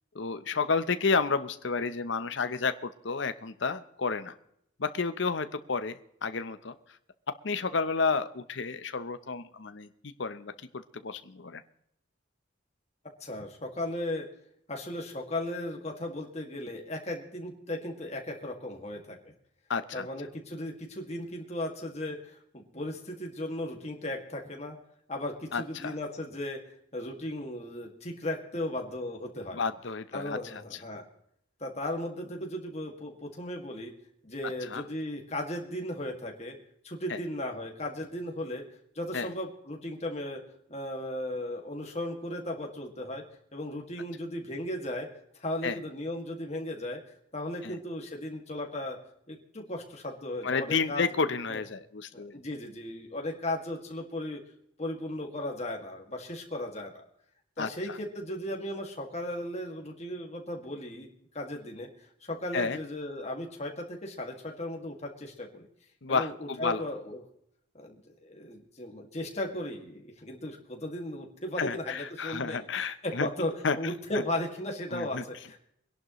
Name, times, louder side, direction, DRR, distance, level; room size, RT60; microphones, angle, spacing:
voice 1, 0.1-4.3 4.8-6.0 6.2-6.7 7.4-11.6 19.7-20.1 25.5-26.0 29.5-30.4 30.7-30.8 34.7-34.8 37.1-37.2 39.1-39.3 45.6-45.8 47.6-47.8 50.4-52.3 57.6-58.0 62.5-62.8 66.0-66.8 71.6-73.3 73.6-73.8 74.9-75.2, left 4 dB, 65° left, 11 dB, 0.8 m, -31 dB
voice 2, 13.2-14.3 14.7-19.3 19.9-24.8 25.1-26.6 26.9-29.6 30.1-31.0 31.6-33.9 34.2-36.6 36.8-38.6 39.0-40.4 40.7-43.2 43.5-45.1 45.3-47.0 47.3-49.0 49.3-51.0 51.5-51.6 52.1-54.4 54.8-57.0 57.6-61.1 61.3-65.7 66.1-67.2 67.7-75.6, left 1 dB, 35° left, 1 dB, 2.1 m, -36 dB
23.5 x 11.0 x 3.1 m, 0.73 s
head